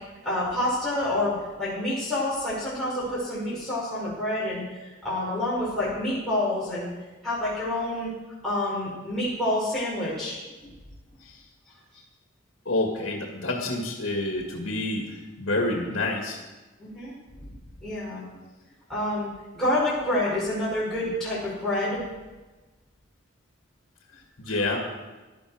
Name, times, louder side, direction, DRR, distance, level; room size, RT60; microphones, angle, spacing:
voice 1, 0.2-6.9 7.2-8.1 8.4-10.4 16.8-17.1 17.8-18.2 18.9-19.3 19.5-22.0, left 1 dB, ahead, -10 dB, 5.6 m, -28 dB
voice 2, 12.7-16.4 24.1-24.8, left 2 dB, 65° left, 1 dB, 1.9 m, -28 dB
15.5 x 12.0 x 5.0 m, 1.2 s
head